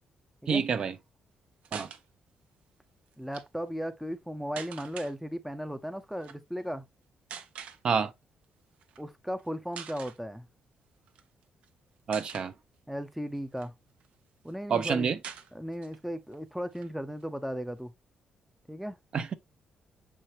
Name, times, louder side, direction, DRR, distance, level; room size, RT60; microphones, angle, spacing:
voice 1, 0.5-0.9 1.7-1.9 7.8-8.1 12.1-12.5 14.7-15.2 19.1-19.3, right 6 dB, 45° right, 0.8 m, -27 dB
sound 1, 1.6-2.0 3.1-3.4 4.6-5.1 6.2-6.4 7.3-7.8 8.8-9.0 9.4-9.5 9.7-10.2 11.1-11.7 12.1-12.5 13.1-14.1 14.5-14.6 14.8-14.9 15.2-16.0 16.3-16.4 16.7-17.8, right 8 dB, 80° right, 0.9 m, -44 dB
voice 2, 3.2-6.9 9.0-10.5 12.9-13.7 14.4-15.1 15.5-17.9 18.7-19.0, equal, ahead, 0.6 m, -36 dB
6.8 x 4.8 x 2.8 m
cardioid pair, 140°, 2 cm